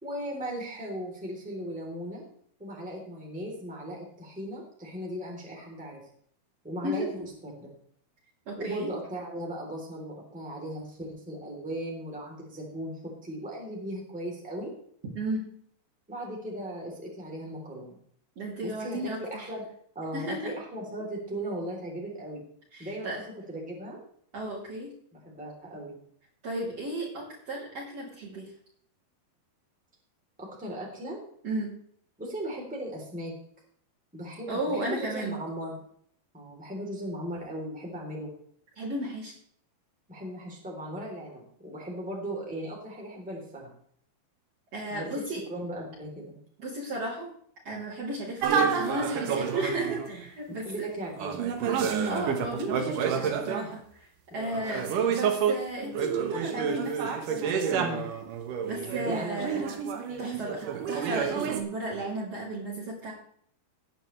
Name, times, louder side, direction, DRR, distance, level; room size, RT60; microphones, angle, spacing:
voice 1, 0.0-2.2 2.6-6.0 6.6-7.7 8.6-12.9 13.2-14.7 16.1-18.0 18.6-19.6 19.9-22.4 22.8-23.2 23.5-24.0 25.2-26.0 30.4-31.2 32.2-33.3 34.1-35.7 36.3-38.3 40.1-43.7 44.9-45.0 45.5-46.4 50.6-51.4 54.3-54.8 57.8-58.1 59.0-59.7 60.1-60.4, right 1 dB, ahead, -2 dB, 3.0 m, -37 dB
voice 2, 8.5-8.9 15.1-15.5 18.4-19.4 20.1-20.5 22.7-23.2 24.3-24.9 26.4-28.5 31.4-31.7 34.5-35.4 38.8-39.3 44.7-45.4 46.6-47.3 47.6-50.9 51.9-54.1 54.3-57.0 57.3-57.8 58.7-59.8 60.2-63.1, right 1 dB, 45° right, -9 dB, 4.1 m, -34 dB
sound 1, 48.4-50.2 51.2-53.8 54.5-61.6, right 7 dB, 65° right, 2.7 m, -29 dB
17.5 x 9.9 x 3.4 m, 0.62 s
omnidirectional pair, 4.4 m